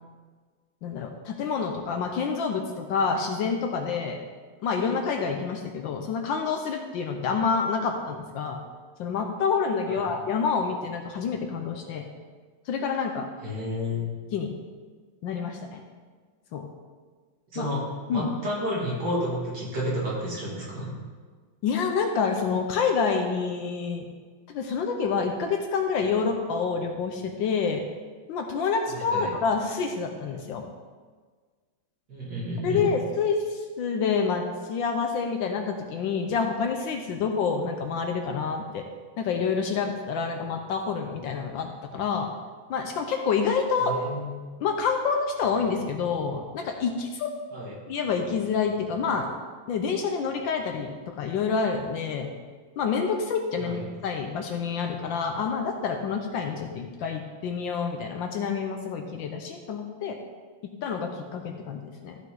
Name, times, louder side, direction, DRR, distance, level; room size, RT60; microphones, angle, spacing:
voice 1, 0.8-4.2 4.6-8.6 9.0-12.0 12.7-13.3 14.3-14.5 15.2-15.8 16.5-16.7 17.6-17.7 18.1-18.3 21.6-24.1 24.5-27.8 28.3-30.6 32.6-38.8 39.2-42.3 42.7-43.9 44.6-47.3 47.9-49.3 49.7-52.3 52.8-53.8 54.0-60.2 60.8-62.2, left 5 dB, 70° left, 4 dB, 1.3 m, -28 dB
voice 2, 13.4-14.1 17.5-17.8 18.1-20.9 28.9-29.3 32.1-32.9 43.8-44.3 47.5-47.7 53.6-53.8, equal, 50° right, -6 dB, 3.1 m, -31 dB
14.0 x 5.5 x 4.0 m, 1.5 s
omnidirectional pair, 2.3 m